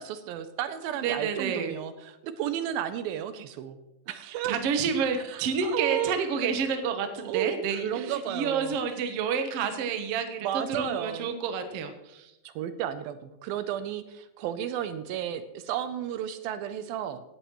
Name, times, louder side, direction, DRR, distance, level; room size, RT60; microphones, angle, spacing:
voice 1, 0.0-3.8 4.1-4.6 5.3-6.2 7.2-8.7 10.4-11.3 12.4-17.2, right 10 dB, 80° right, 11 dB, 2.5 m, -33 dB
voice 2, 1.0-1.7 4.2-12.3, right 6 dB, 65° right, 6 dB, 1.6 m, -29 dB
16.5 x 11.0 x 3.1 m, 0.94 s
omnidirectional pair, 4.3 m